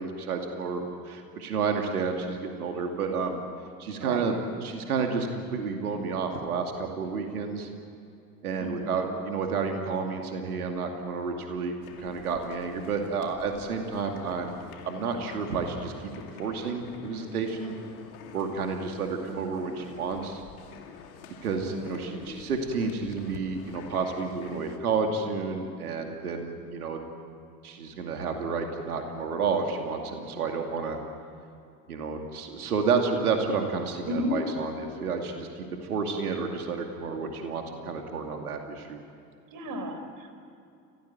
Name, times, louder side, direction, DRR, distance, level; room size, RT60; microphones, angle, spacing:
voice 1, 0.0-3.4 3.8-7.7 8.4-11.7 12.0-14.5 14.8-17.7 18.3-20.4 21.4-27.0 27.6-31.0 31.9-39.0, right 5 dB, 80° right, 3 dB, 2.5 m, -30 dB
voice 2, 8.6-9.0 21.6-22.4 34.1-34.3 39.5-40.3, equal, 45° right, 7 dB, 4.3 m, -34 dB
sound 1, 11.8-24.8, left 6 dB, 70° left, 2.5 m, -48 dB
27.5 x 17.5 x 9.4 m, 2.6 s
figure-of-eight pair, 65°, 45 cm